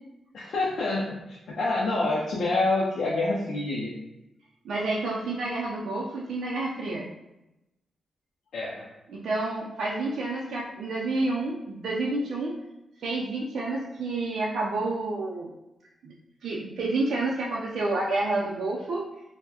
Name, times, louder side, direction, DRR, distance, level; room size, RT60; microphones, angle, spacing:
voice 1, 0.3-3.9 8.5-8.8, left 2 dB, 60° left, -5 dB, 0.5 m, -27 dB
voice 2, 4.6-7.1 9.1-12.6 13.0-15.5 16.0-16.1 16.4-19.1, right 2 dB, 65° right, -3 dB, 0.4 m, -29 dB
4.3 x 2.1 x 2.8 m, 0.93 s
wide cardioid pair, 180°, 0 cm